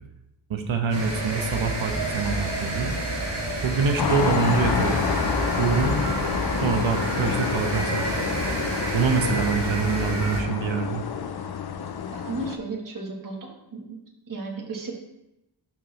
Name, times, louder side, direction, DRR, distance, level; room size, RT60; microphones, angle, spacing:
voice 1, 0.5-2.9 3.6-5.0 5.6-5.9 6.6-8.1 8.9-11.0, right 5 dB, 80° right, 5 dB, 1.0 m, -25 dB
sound 1, 0.9-10.4, right 1 dB, 60° right, 2.3 m, -29 dB
sound 2, 4.0-12.6, left 7 dB, 55° left, 0.6 m, -29 dB
sound 3, 4.5-10.6, left 5 dB, 90° left, 1.0 m, -37 dB
voice 2, 12.1-14.0 14.3-15.0, right 3 dB, 40° right, 0 dB, 1.4 m, -34 dB
12.0 x 4.3 x 3.2 m, 0.89 s
wide cardioid pair, 125°, 47 cm